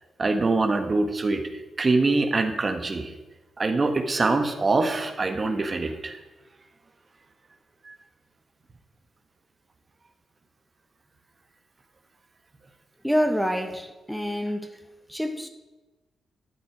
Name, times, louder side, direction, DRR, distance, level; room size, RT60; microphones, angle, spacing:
voice 1, 0.2-1.4 1.8-3.1 3.6-6.2 7.8-7.9, right 3 dB, 40° right, 1.5 m, -24 dB
voice 2, 13.0-14.8 15.1-15.5, equal, ahead, 1.3 m, -27 dB
12.5 x 9.4 x 4.8 m
supercardioid pair, 45°, 0 cm